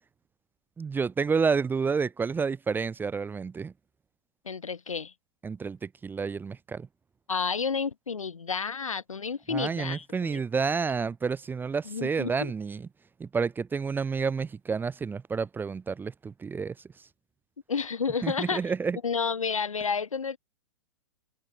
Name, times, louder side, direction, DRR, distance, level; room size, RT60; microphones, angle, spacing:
voice 1, 0.8-3.7 5.4-6.9 9.5-12.9 13.2-16.7 18.2-19.0, right 5 dB, 10° right, 0.9 m, -29 dB
voice 2, 4.4-5.1 7.3-10.4 11.8-12.5 17.7-18.6 19.0-20.4, left 5 dB, 85° left, 3.3 m, -31 dB
hypercardioid pair, 115°, 17 cm